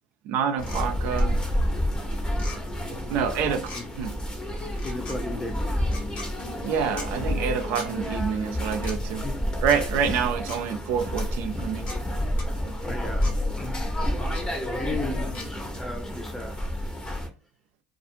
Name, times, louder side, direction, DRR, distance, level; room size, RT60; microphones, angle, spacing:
voice 1, 0.3-1.4 2.9-4.2 6.6-9.3 9.6-11.9, right 7 dB, 70° right, 0.5 m, -27 dB
sound 1, 0.6-0.8 1.2-1.5 2.3-2.6 3.6-3.8 4.7-5.2 5.8-6.3 7.0-7.1 7.7-7.9 8.8-9.0 9.7-9.8 10.5-10.6 11.2-11.3 11.9-12.0 12.4-12.5 13.2-13.3 14.3-14.4 15.3-15.5, left 2 dB, 50° left, 1.2 m, -39 dB
sound 2, 0.6-17.3, equal, 25° left, 1.0 m, -29 dB
voice 2, 3.4-3.8 4.8-5.8 9.2-9.4 10.1-10.2 12.8-13.8 14.7-16.6, left 2 dB, 10° left, 0.7 m, -36 dB
2.4 x 2.4 x 2.7 m
supercardioid pair, 95°, 3 cm